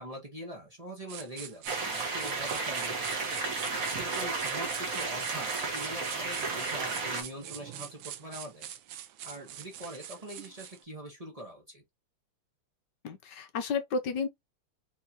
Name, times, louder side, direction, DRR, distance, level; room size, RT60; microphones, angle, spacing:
voice 1, 0.0-3.4 4.0-8.7 9.2-11.8, equal, 25° right, 1.0 m, -43 dB
sound 1, 1.1-10.8, right 11 dB, 75° right, 1.4 m, -44 dB
sound 2, 1.7-7.2, right 3 dB, 45° right, 1.4 m, -33 dB
voice 2, 13.0-14.3, left 4 dB, 65° left, 1.2 m, -32 dB
4.3 x 3.8 x 2.8 m
omnidirectional pair, 2.4 m